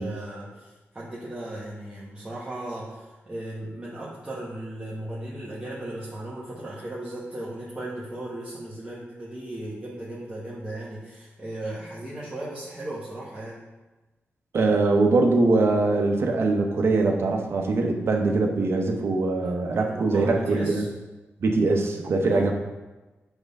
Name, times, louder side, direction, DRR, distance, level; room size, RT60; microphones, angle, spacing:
voice 1, 0.0-13.6 19.4-20.9 22.3-22.5, right 1 dB, 20° right, -8 dB, 1.4 m, -36 dB
voice 2, 14.5-20.8 21.4-22.5, right 3 dB, 60° right, 2 dB, 1.0 m, -22 dB
7.8 x 3.6 x 5.4 m, 1.1 s
wide cardioid pair, 120°, 5 cm